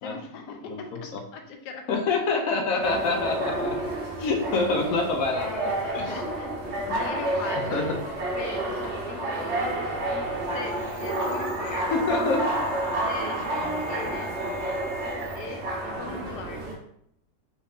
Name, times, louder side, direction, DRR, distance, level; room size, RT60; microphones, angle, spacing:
voice 1, 0.0-1.9 5.8-7.8 8.3-9.9 10.5-12.0 13.0-14.5 15.3-16.7, left 4 dB, 85° left, 4 dB, 1.3 m, -40 dB
voice 2, 0.6-1.2 1.9-3.8 4.2-6.2 7.5-8.0 11.9-12.5, left 3 dB, 70° left, 3 dB, 0.9 m, -26 dB
sound 1, 2.8-16.7, right 1 dB, 50° right, 0.9 m, -30 dB
sound 2, 10.4-15.6, right 3 dB, 85° right, 1.2 m, -44 dB
3.9 x 2.5 x 3.4 m, 0.70 s
omnidirectional pair, 1.7 m